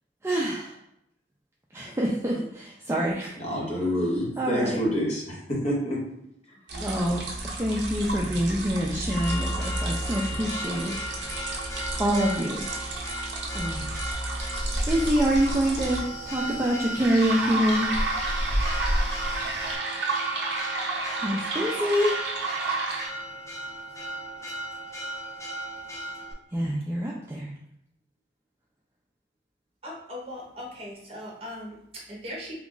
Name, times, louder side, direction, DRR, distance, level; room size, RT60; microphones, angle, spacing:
voice 1, 0.2-0.7 1.7-3.3 4.4-4.8 6.8-7.2 7.6-10.9 12.0-12.6 13.5-13.9 14.9-17.9 21.2-22.1 26.5-27.5, equal, 15° right, -3 dB, 0.3 m, -26 dB
voice 2, 3.4-6.0 6.7-6.8, equal, 35° left, -4 dB, 0.9 m, -28 dB
sound 1, 6.7-16.0 17.0-23.1, right 2 dB, 65° right, 0.6 m, -32 dB
Church bell, 9.1-26.3, equal, 15° left, 0.7 m, -37 dB
sound 2, 14.5-19.8, equal, 65° left, 0.7 m, -31 dB
voice 3, 29.8-32.5, left 1 dB, 30° right, -3 dB, 0.9 m, -39 dB
2.9 x 2.4 x 3.7 m, 0.76 s
head